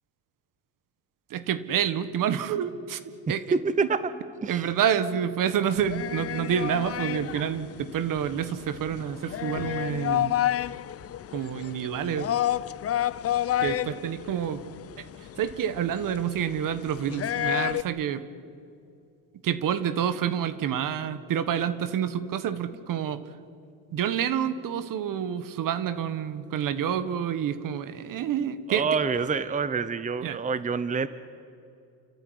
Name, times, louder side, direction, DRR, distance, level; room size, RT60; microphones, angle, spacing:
voice 1, 1.3-3.0 3.3-3.4 4.5-10.3 11.3-12.3 13.6-14.6 15.0-15.1 15.4-18.2 19.4-23.2 23.9-28.8 30.2-30.4, right 9 dB, 60° right, 14 dB, 1.7 m, -28 dB
voice 2, 3.5-4.0 4.4-4.7 28.7-31.1, right 5 dB, 20° right, 14 dB, 0.9 m, -27 dB
sound 1, 5.8-17.8, left 12 dB, 40° left, 0.7 m, -30 dB
30.0 x 14.5 x 9.9 m, 2.5 s
cardioid pair, 100°, 37 cm